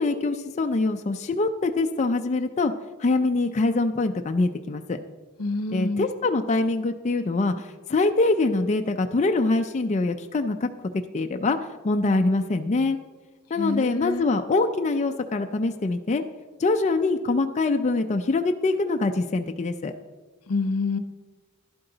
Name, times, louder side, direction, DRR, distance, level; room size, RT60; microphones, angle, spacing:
voice 1, 0.0-2.7 3.0-5.0 5.7-10.7 11.1-11.6 11.8-13.0 13.5-16.2 16.6-19.9, left 3 dB, 30° left, 5 dB, 0.4 m, -24 dB
voice 2, 5.4-6.1 13.6-14.3 20.5-21.0, left 3 dB, 80° left, 11 dB, 0.8 m, -27 dB
11.5 x 11.0 x 3.9 m, 1.3 s
head